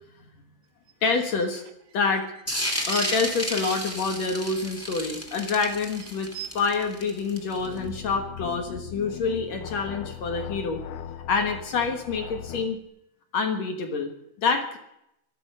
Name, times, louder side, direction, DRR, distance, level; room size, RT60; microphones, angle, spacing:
sound 1, 0.9-4.0 4.3-5.2 5.5-5.6 5.8-6.5, right 9 dB, 70° right, 1.5 m, -42 dB
voice 1, 1.0-1.6 1.9-2.3 2.9-10.8 11.3-12.8 13.3-14.1 14.4-14.8, left 4 dB, 55° left, 5 dB, 2.1 m, -27 dB
sound 2, 2.5-7.8, equal, 10° left, 0.8 m, -32 dB
sound 3, 7.5-12.8, left 9 dB, 85° left, 2.7 m, -39 dB
16.5 x 12.5 x 5.4 m, 0.80 s
omnidirectional pair, 4.4 m